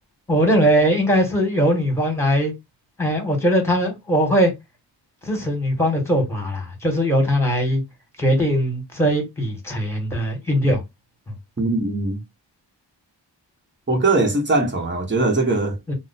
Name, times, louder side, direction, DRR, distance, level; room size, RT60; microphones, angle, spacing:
voice 1, 0.3-2.5 3.0-4.5 5.2-7.8 8.2-10.8 15.9-16.0, equal, 5° left, 1.5 m, -20 dB
voice 2, 11.6-12.2 13.9-15.8, right 2 dB, 25° right, 1.1 m, -20 dB
2.9 x 2.0 x 4.1 m
wide cardioid pair, 70°, 43 cm